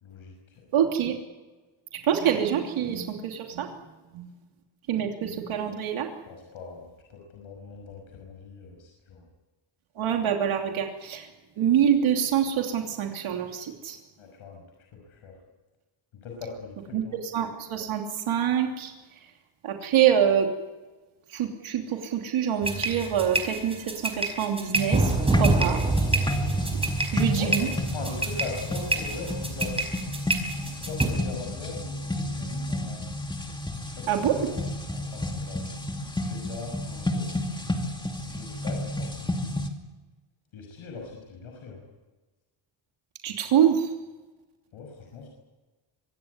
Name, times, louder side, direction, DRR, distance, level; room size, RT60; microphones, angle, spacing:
voice 1, 0.0-0.6 6.3-9.2 14.2-14.6 15.1-15.3 16.2-17.2 27.3-29.7 30.6-33.0 34.0-34.5 34.9-35.6 36.2-37.2 38.2-39.6 40.5-41.8 44.7-45.3, left 4 dB, 80° left, 2 dB, 6.0 m, -40 dB
voice 2, 0.7-1.1 1.9-3.7 4.1-4.3 4.9-6.1 10.0-11.3 11.6-14.0 16.9-18.9 19.6-20.5 21.3-25.1 25.4-25.8 27.1-27.7 34.1-34.5 43.2-43.9, right 9 dB, 85° right, 2 dB, 3.1 m, -25 dB
sound 1, 22.6-31.0, right 2 dB, 10° right, 4.9 m, -27 dB
sound 2, 24.7-39.7, left 1 dB, 10° left, 2.5 m, -32 dB
25.0 x 18.0 x 9.6 m, 1.2 s
cardioid pair, 145°, 48 cm